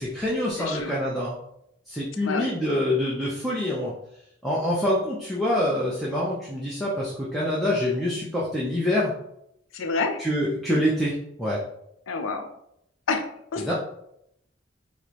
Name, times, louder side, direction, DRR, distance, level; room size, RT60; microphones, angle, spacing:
voice 1, 0.0-1.4 1.9-3.9 4.4-9.1 10.2-11.6 13.6-13.7, left 1 dB, ahead, -7 dB, 0.6 m, -26 dB
voice 2, 0.6-1.0 2.2-2.5 9.7-10.2 12.1-12.5 13.1-13.7, left 4 dB, 85° left, 6 dB, 0.5 m, -28 dB
4.7 x 2.1 x 2.8 m, 0.75 s
head